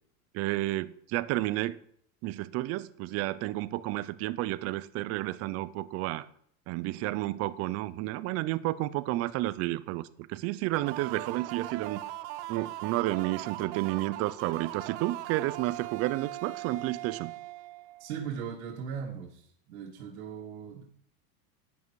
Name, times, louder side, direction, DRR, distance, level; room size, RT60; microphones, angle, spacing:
voice 1, 0.3-1.8 2.2-6.2 6.7-12.0 12.5-17.3, right 17 dB, 35° right, 16 dB, 0.5 m, -31 dB
sound 1, 10.7-18.3, right 16 dB, 55° right, 0.9 m, -40 dB
voice 2, 18.0-20.8, right 7 dB, 80° right, -2 dB, 2.4 m, -39 dB
11.0 x 9.2 x 4.8 m, 0.66 s
supercardioid pair, 140°, 42 cm